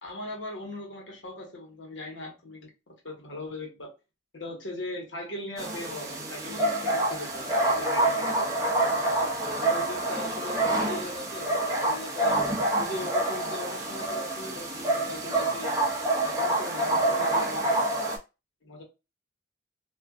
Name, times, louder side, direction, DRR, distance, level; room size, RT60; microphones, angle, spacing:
voice 1, 0.0-2.7 3.0-3.9 4.3-8.5 9.4-12.4 12.8-15.7 16.2-17.9 18.6-18.8, left 1 dB, 70° left, 0 dB, 1.1 m, -39 dB
sound 1, 5.6-18.2, right 1 dB, 15° right, 0.6 m, -27 dB
2.4 x 2.2 x 3.5 m, 0.27 s
head